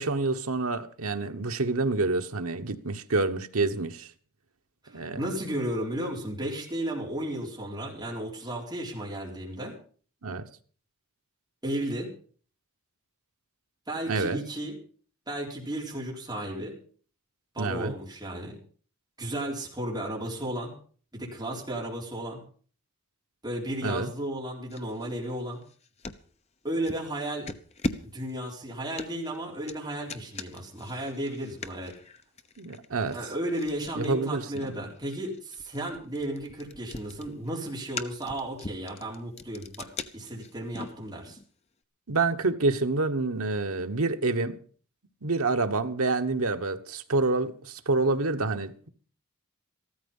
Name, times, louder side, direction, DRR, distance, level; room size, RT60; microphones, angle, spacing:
voice 1, 0.0-4.1 4.9-5.2 10.2-10.5 14.1-14.4 17.6-17.9 23.8-24.1 32.6-33.2 33.9-34.7 42.1-44.6 45.2-48.9, right 3 dB, 75° right, 1.3 m, -27 dB
voice 2, 4.8-9.7 11.6-12.1 13.9-14.8 15.3-16.8 17.5-18.6 19.2-20.7 21.1-22.4 23.4-25.6 26.6-27.5 28.0-31.9 33.1-41.4, right 1 dB, 20° right, 4.1 m, -34 dB
sound 1, 24.7-26.2 26.8-27.1 27.5-41.5, left 2 dB, 30° left, 0.9 m, -40 dB
14.5 x 13.5 x 5.5 m
head